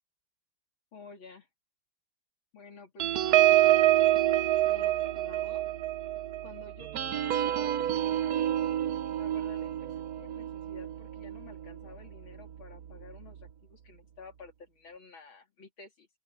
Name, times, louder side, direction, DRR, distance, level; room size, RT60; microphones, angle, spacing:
voice 1, 0.9-1.5 2.5-5.6 6.4-8.5 9.2-16.1, left 4 dB, 75° left, 3.5 m, -52 dB
sound 1, 3.0-11.9 12.4-12.6 12.9-13.2, right 13 dB, 60° right, 1.0 m, -27 dB
open air
omnidirectional pair, 2.2 m